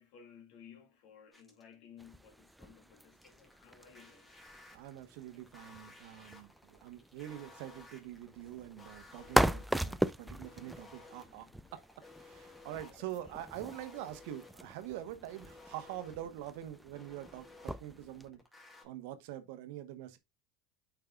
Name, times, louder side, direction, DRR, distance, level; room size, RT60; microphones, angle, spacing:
voice 1, 0.0-4.3 12.9-13.1, left 7 dB, 65° left, 2.1 m, -57 dB
sound 1, 1.3-1.7 3.2-18.8, left 3 dB, 15° left, 1.9 m, -57 dB
sound 2, 2.0-18.3, right 1 dB, 5° right, 0.3 m, -39 dB
voice 2, 4.7-11.5 11.7-11.8 12.2-18.4 18.8-20.2, right 12 dB, 70° right, 0.9 m, -45 dB
8.9 x 4.7 x 2.3 m
hypercardioid pair, 100°, 0 cm